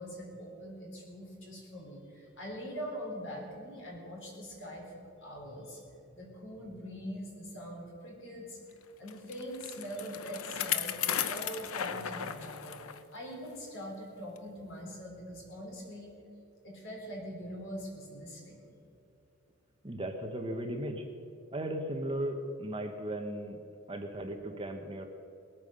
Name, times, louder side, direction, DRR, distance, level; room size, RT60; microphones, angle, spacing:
voice 1, 0.0-5.8 6.1-8.6 9.0-12.8 13.1-16.2 16.6-18.6, equal, 60° left, -1 dB, 4.1 m, -43 dB
Bicycle, 9.1-13.0 13.4-13.5 14.4-14.5, left 9 dB, 75° left, 0.7 m, -35 dB
voice 2, 19.8-21.0 21.5-23.6 23.9-25.0, right 1 dB, 25° right, 5 dB, 1.0 m, -36 dB
20.0 x 9.0 x 6.6 m, 2.6 s
head